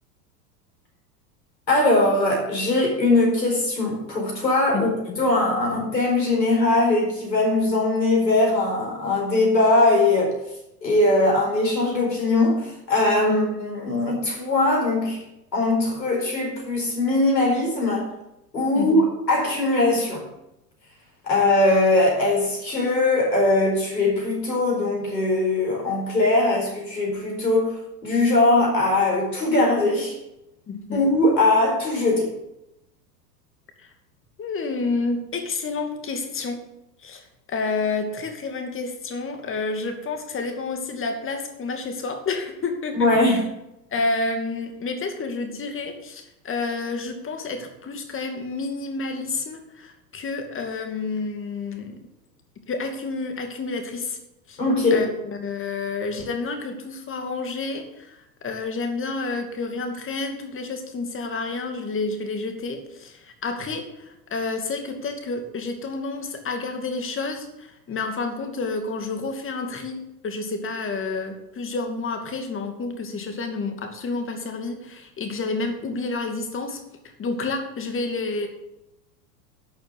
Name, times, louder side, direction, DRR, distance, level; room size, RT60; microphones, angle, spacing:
voice 1, 1.7-4.9 5.2-10.3 10.8-15.2 15.5-18.1 18.5-20.3 21.2-30.2 30.9-32.3 42.9-43.4 54.6-55.0, left 2 dB, 85° left, 0 dB, 4.7 m, -21 dB
voice 2, 4.7-5.2 13.3-13.4 18.7-19.1 30.7-31.1 33.8-33.9 34.4-36.6 37.0-43.4 43.9-52.0 52.7-54.2 54.5-54.6 54.9-76.8 77.2-78.5, left 3 dB, 25° left, 6 dB, 2.5 m, -30 dB
11.5 x 6.6 x 8.0 m, 0.87 s
hypercardioid pair, 95°, 49 cm